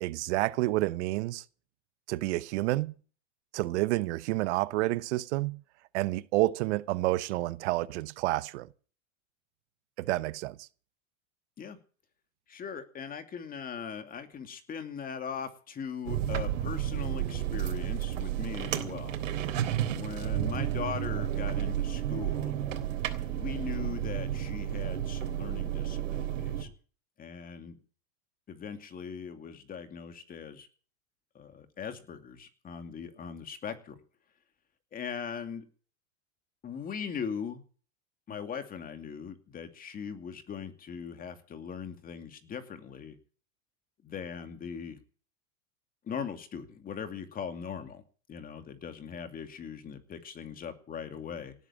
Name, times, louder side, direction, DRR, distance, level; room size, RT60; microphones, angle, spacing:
voice 1, 0.0-1.4 2.1-2.9 3.5-5.6 5.9-8.7 10.0-10.7, right 18 dB, 65° right, 1.0 m, -29 dB
voice 2, 12.5-19.2 19.9-22.5 23.3-26.7 27.2-27.8 28.5-30.7 31.3-34.0 34.9-35.7 36.6-37.6 38.3-43.2 44.0-45.0 46.0-48.0 48.3-51.5, left 7 dB, 20° left, 2.5 m, -40 dB
sound 1, 16.0-26.6, right 11 dB, 90° right, 3.5 m, -32 dB
18.0 x 9.5 x 7.3 m
supercardioid pair, 140°, 38 cm